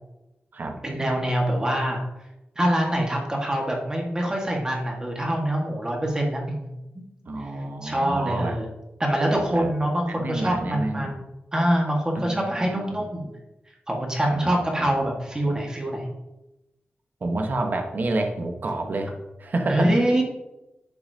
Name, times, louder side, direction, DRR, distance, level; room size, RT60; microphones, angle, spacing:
voice 1, 0.8-2.0 2.5-7.0 7.8-8.7 9.0-11.2 11.5-13.4 13.9-16.1 19.7-20.2, right 1 dB, 20° right, -1 dB, 1.6 m, -24 dB
voice 2, 7.3-8.6 9.3-9.7 10.1-11.2 12.1-13.1 14.3-14.9 15.4-15.5 17.2-19.9, right 2 dB, 50° right, 3 dB, 1.1 m, -29 dB
11.5 x 6.9 x 2.8 m, 0.95 s
wide cardioid pair, 130°, 4 cm